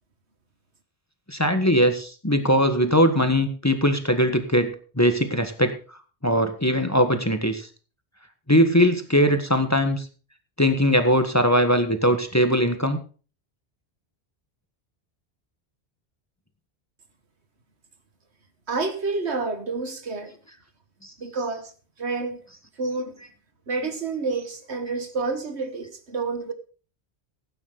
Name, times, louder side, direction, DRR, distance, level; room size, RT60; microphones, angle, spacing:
voice 1, 1.3-5.7 6.2-7.7 8.5-10.1 10.6-13.0, equal, 15° left, 1.4 m, -20 dB
voice 2, 18.7-20.3 21.2-21.7 22.0-22.4 22.8-23.2 23.7-26.5, right 3 dB, 80° right, 1.9 m, -29 dB
17.0 x 9.6 x 3.9 m
omnidirectional pair, 1.1 m